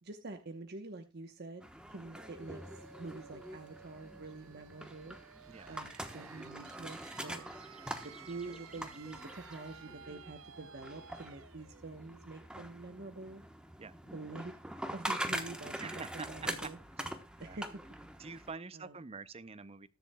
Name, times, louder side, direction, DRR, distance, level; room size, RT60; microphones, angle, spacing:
voice 1, 0.0-2.6 3.0-5.2 5.7-7.5 8.0-13.4 14.1-14.5 14.9-16.8 17.4-17.8 18.7-18.9, right 3 dB, 50° right, 1.0 m, -46 dB
sound 1, 1.6-18.5, right 1 dB, 5° right, 1.0 m, -44 dB
sound 2, 2.0-13.6, right 7 dB, 80° right, 0.6 m, -55 dB
voice 2, 15.8-16.7 17.0-17.1 17.4-17.6 18.2-19.9, right 4 dB, 30° right, 0.6 m, -46 dB
20.5 x 7.0 x 2.3 m
head